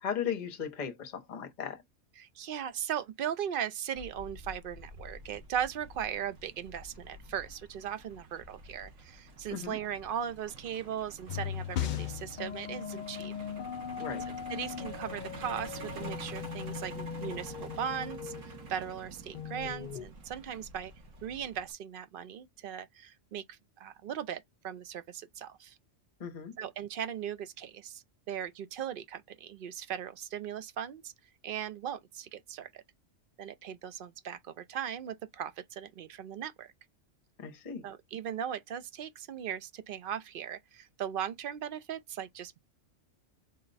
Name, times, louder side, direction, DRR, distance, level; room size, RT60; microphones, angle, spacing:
voice 1, 0.0-1.8 9.5-9.8 14.0-14.2 26.2-26.5 37.4-37.8, left 7 dB, 40° left, 0.9 m, -36 dB
voice 2, 2.2-13.3 14.5-20.9 21.2-25.8 26.6-31.1 31.4-32.8 33.4-36.7 37.8-42.6, right 9 dB, 55° right, 0.7 m, -38 dB
Truck, 4.0-21.7, right 3 dB, 85° right, 1.5 m, -48 dB
sound 1, 11.3-20.1, left 9 dB, 60° left, 0.5 m, -39 dB
3.9 x 2.1 x 4.0 m
omnidirectional pair, 1.3 m